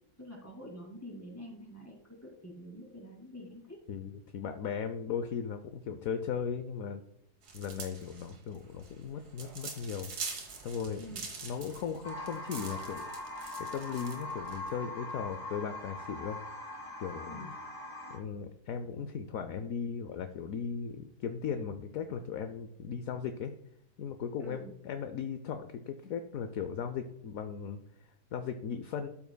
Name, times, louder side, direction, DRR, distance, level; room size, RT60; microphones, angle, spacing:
voice 1, 0.2-3.8 11.0-11.3 17.3-17.7 24.4-24.8, equal, 10° left, -1 dB, 2.2 m, -47 dB
voice 2, 3.9-7.0 7.5-10.1 10.6-11.0 11.4-13.0 13.6-16.4 17.0-17.6 18.1-23.5 24.0-29.1, left 7 dB, 70° left, 8 dB, 0.9 m, -37 dB
sound 1, 7.4-14.7, right 4 dB, 75° right, 1.8 m, -44 dB
sound 2, 12.0-18.2, left 2 dB, 55° left, 2.7 m, -42 dB
13.0 x 5.8 x 2.2 m, 0.75 s
omnidirectional pair, 1.7 m